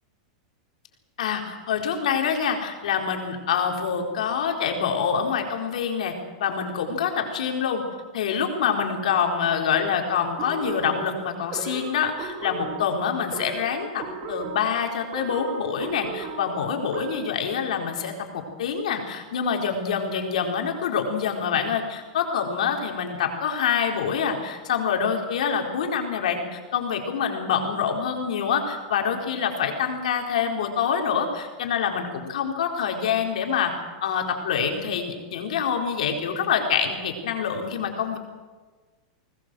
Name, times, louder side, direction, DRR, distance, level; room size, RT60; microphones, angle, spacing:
voice 1, 1.2-6.1 6.4-7.8 8.1-33.7 34.0-38.2, left 7 dB, 80° left, 2 dB, 4.2 m, -26 dB
sound 1, 10.4-17.4, right 5 dB, 40° right, 3.2 m, -36 dB
21.0 x 19.5 x 7.7 m, 1.4 s
supercardioid pair, 160°, 4 cm